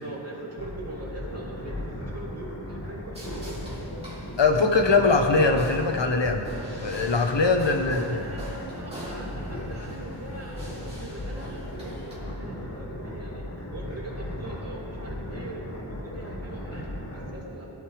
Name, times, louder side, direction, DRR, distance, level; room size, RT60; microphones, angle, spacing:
voice 1, 0.0-3.6 7.3-13.4 13.7-17.7, right 2 dB, 30° right, -6 dB, 3.2 m, -41 dB
sound 1, 0.6-17.3, left 1 dB, 30° left, 2.0 m, -37 dB
sound 2, 3.1-12.2, right 1 dB, 15° right, 3.5 m, -43 dB
voice 2, 4.4-6.5 6.8-8.2, left 3 dB, 65° left, 5 dB, 1.2 m, -22 dB
17.0 x 12.0 x 3.5 m, 2.8 s
wide cardioid pair, 90°, 47 cm